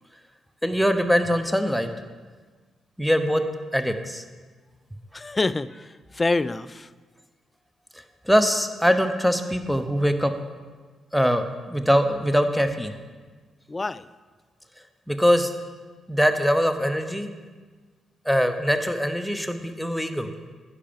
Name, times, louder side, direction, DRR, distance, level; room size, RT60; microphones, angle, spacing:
voice 1, 0.6-1.9 3.0-3.4 3.7-4.2 8.3-10.3 11.1-12.9 15.1-15.5 16.1-17.3 18.2-20.3, equal, ahead, 7 dB, 0.9 m, -22 dB
voice 2, 5.1-6.9 13.7-14.1, left 3 dB, 30° left, 17 dB, 0.3 m, -26 dB
9.8 x 5.7 x 5.3 m, 1.4 s
hypercardioid pair, 40°, 0 cm